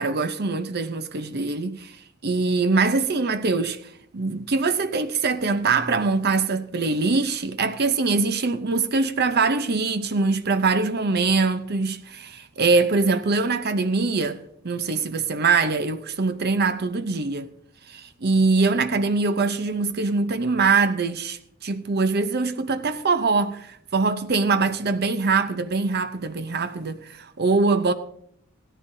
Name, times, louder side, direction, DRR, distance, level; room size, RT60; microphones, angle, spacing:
voice 1, 0.0-2.0 2.2-17.5 17.9-27.9, right 4 dB, 50° right, 0.7 m, -23 dB
17.0 x 13.5 x 2.7 m
head